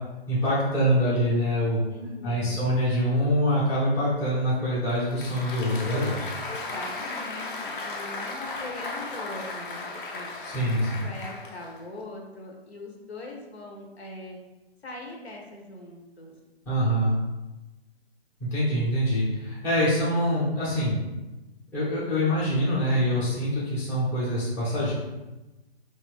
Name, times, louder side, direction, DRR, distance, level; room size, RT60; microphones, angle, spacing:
voice 1, 0.3-1.8 2.2-6.3 10.4-11.0 16.7-17.2 18.4-21.0 21.7-24.9, equal, 10° left, -9 dB, 0.6 m, -25 dB
voice 2, 1.8-2.6 6.5-10.3 10.8-14.4 14.8-16.3, left 2 dB, 75° left, 1 dB, 0.9 m, -41 dB
Applause, 4.9-12.0, left 3 dB, 55° left, 0.6 m, -36 dB
2.9 x 2.6 x 3.3 m, 1.1 s
figure-of-eight pair, 130°, 32 cm